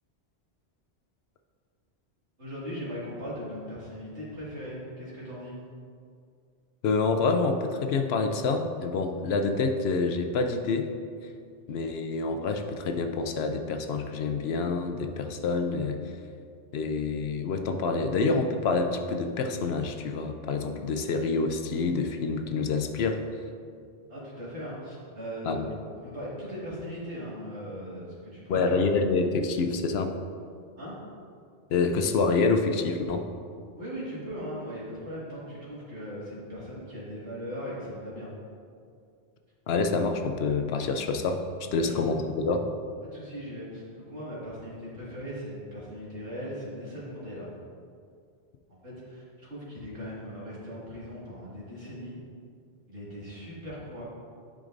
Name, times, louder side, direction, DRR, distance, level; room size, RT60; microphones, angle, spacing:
voice 1, 2.4-5.6 24.1-29.0 30.8-30.9 33.8-38.3 41.8-42.0 43.0-47.5 48.8-52.2 52.9-54.0, equal, 85° right, -8 dB, 2.3 m, -39 dB
voice 2, 6.8-10.9 11.7-16.0 16.7-23.2 25.5-25.6 28.5-30.1 31.7-33.3 39.7-41.4 41.7-42.7, left 4 dB, 70° left, 6 dB, 0.8 m, -27 dB
10.5 x 5.1 x 2.6 m, 2.3 s
omnidirectional pair, 1.1 m